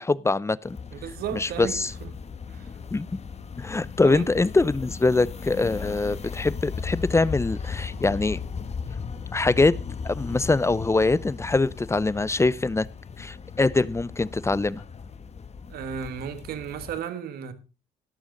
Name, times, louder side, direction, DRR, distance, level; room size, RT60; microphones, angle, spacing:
voice 1, 0.0-0.8 1.3-1.9 2.9-3.1 3.6-8.4 9.3-9.8 10.1-12.9 13.2-14.8, left 3 dB, 15° left, 0.6 m, -23 dB
sound 1, 0.7-17.0, left 5 dB, 40° left, 1.5 m, -37 dB
voice 2, 0.9-2.1 2.5-2.7 4.0-4.3 15.7-17.5, right 8 dB, 75° right, 1.7 m, -34 dB
12.5 x 11.5 x 3.9 m
supercardioid pair, 60°, 16 cm